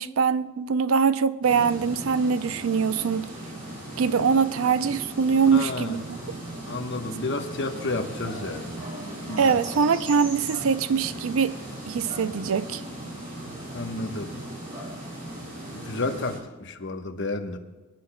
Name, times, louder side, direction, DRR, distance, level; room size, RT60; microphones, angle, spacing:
voice 1, 0.0-3.3 4.0-6.0 9.4-11.6 11.9-12.8, right 6 dB, 85° right, 0.5 m, -23 dB
sound 1, 1.4-16.4, right 1 dB, 40° right, 4.1 m, -37 dB
voice 2, 5.4-6.1 6.7-8.8 9.2-9.6 13.7-14.3 15.7-17.6, left 2 dB, 60° left, 1.0 m, -31 dB
24.5 x 10.5 x 2.2 m
head